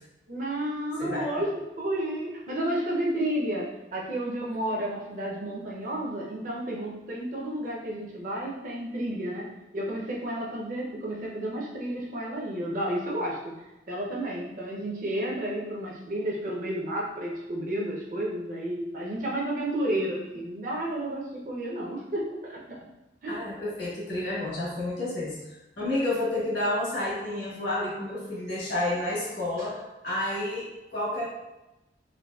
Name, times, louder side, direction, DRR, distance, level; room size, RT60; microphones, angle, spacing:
voice 1, 0.3-22.8 23.2-23.4, right 1 dB, 45° right, -3 dB, 0.6 m, -31 dB
voice 2, 1.0-1.4 23.3-31.3, left 1 dB, 75° left, -7 dB, 1.4 m, -30 dB
3.8 x 2.6 x 2.3 m, 0.98 s
head